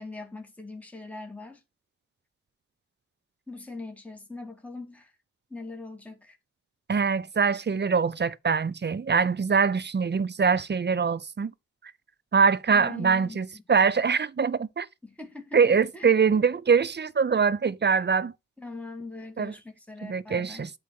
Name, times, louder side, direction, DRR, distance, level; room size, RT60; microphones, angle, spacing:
voice 1, 0.0-1.6 3.5-5.1 5.5-6.4 12.7-13.4 15.0-16.4 18.6-20.7, left 3 dB, 5° left, 2.2 m, -41 dB
voice 2, 6.9-11.5 12.3-14.9 15.5-18.3 19.4-19.5 20.0-20.7, right 5 dB, 35° right, 0.7 m, -23 dB
8.5 x 3.2 x 6.4 m
cardioid pair, 55°, 32 cm